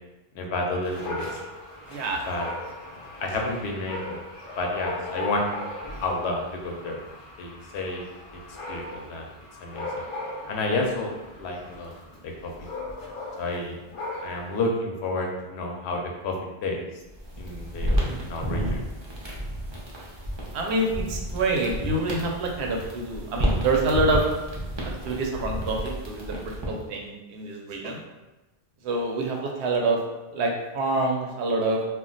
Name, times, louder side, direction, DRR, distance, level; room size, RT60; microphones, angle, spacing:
voice 1, 0.3-1.3 2.3-2.5 3.2-4.2 4.6-5.6 6.0-7.0 7.4-8.0 8.7-9.2 9.6-9.9 10.5-11.9 12.2-12.5 13.4-13.8 14.2-16.3 16.6-16.8 17.4-18.9, left 2 dB, 85° left, 1 dB, 0.9 m, -30 dB
Dog, 0.8-14.6, left 2 dB, 45° left, 0.4 m, -38 dB
voice 2, 1.9-2.3 17.9-18.2 20.5-24.2 25.0-28.0 28.8-30.0 30.3-31.8, right 2 dB, 85° right, 0 dB, 0.9 m, -26 dB
sound 1, 17.1-26.9, equal, 35° right, 0.5 m, -31 dB
2.3 x 2.2 x 3.8 m, 1.1 s
omnidirectional pair, 1.1 m